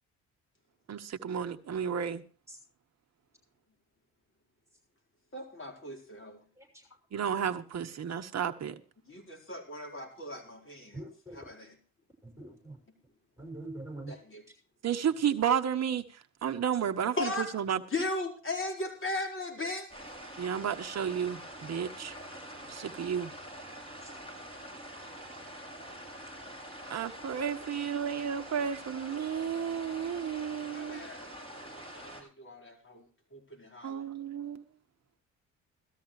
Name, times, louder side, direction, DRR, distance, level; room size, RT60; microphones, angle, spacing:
voice 1, 0.9-2.2 7.1-8.7 14.8-16.0 16.4-17.8 20.4-22.1 22.7-23.3 26.9-31.1 33.8-34.6, right 8 dB, 45° right, 1.2 m, -32 dB
voice 2, 5.3-6.4 9.1-11.0 11.4-11.7 14.1-14.4 17.2-17.5 17.9-19.9 30.7-33.1 33.3-34.0, left 2 dB, 30° left, 4.8 m, -37 dB
voice 3, 6.6-6.9 10.9-11.4 12.2-12.8 13.4-14.1 24.0-24.1, right 2 dB, 5° right, 6.6 m, -44 dB
sound 1, 19.9-32.2, equal, 15° left, 5.9 m, -45 dB
17.5 x 13.5 x 3.2 m
hypercardioid pair, 55°, 38 cm